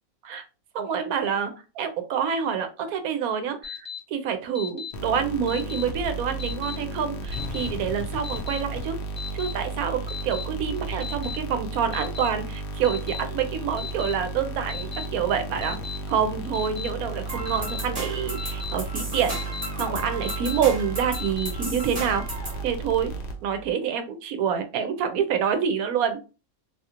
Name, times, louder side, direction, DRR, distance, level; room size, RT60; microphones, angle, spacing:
voice 1, 0.7-9.0 9.3-15.8 16.1-19.4 19.8-22.2 22.6-23.1 23.4-26.2, right 7 dB, 80° right, 8 dB, 1.0 m, -27 dB
Alarm, 3.6-4.0 4.6-4.9 5.5-5.8 6.4-6.8 7.3-7.7 8.2-8.6 9.2-9.5 10.1-10.4 11.0-11.4 11.9-12.3 12.8-13.2 13.8-14.1 14.7-15.1 15.6-16.0 16.5-16.9 17.5-17.8 18.4-18.7 19.3-19.7 20.2-20.6 21.1-21.5, left 7 dB, 25° left, 0.6 m, -36 dB
sound 1, 4.9-23.7, right 2 dB, 75° left, 0.5 m, -34 dB
sound 2, 17.3-22.6, right 1 dB, 20° right, 1.2 m, -35 dB
2.8 x 2.6 x 2.4 m, 0.32 s
omnidirectional pair, 1.5 m